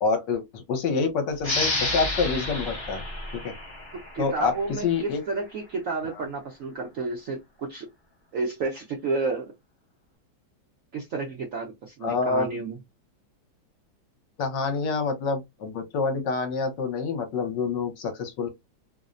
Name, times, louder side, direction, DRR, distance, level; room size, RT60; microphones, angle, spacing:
voice 1, 0.0-3.0 3.3-3.5 4.2-5.2 6.2-6.3 12.0-12.5 14.4-18.5, left 4 dB, 70° left, 1.3 m, -27 dB
sound 1, 1.4-4.7, left 2 dB, 25° left, 0.6 m, -30 dB
voice 2, 3.9-7.9 8.3-9.5 10.9-12.8, right 3 dB, 70° right, 0.8 m, -31 dB
3.2 x 2.0 x 2.4 m
omnidirectional pair, 2.2 m